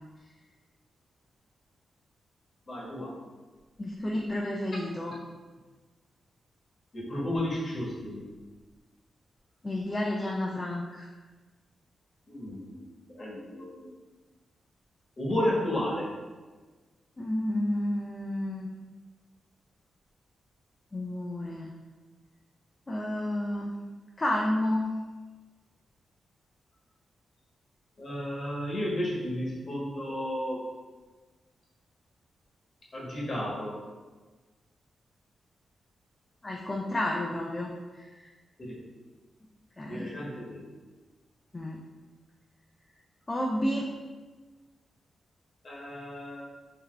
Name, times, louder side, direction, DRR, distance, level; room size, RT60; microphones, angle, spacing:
voice 1, 2.7-3.2 6.9-8.3 12.3-13.9 15.2-16.1 28.0-30.6 32.9-33.8 38.6-38.8 39.8-40.6 45.6-46.4, left 1 dB, 40° left, -5 dB, 1.2 m, -33 dB
voice 2, 3.8-5.1 9.6-11.1 17.2-18.7 20.9-21.7 22.9-23.7 24.2-24.9 36.4-38.3 39.8-40.1 41.5-41.8 43.3-43.9, left 1 dB, 25° left, -2 dB, 0.4 m, -31 dB
3.9 x 2.8 x 3.2 m, 1.3 s
wide cardioid pair, 110°, 0 cm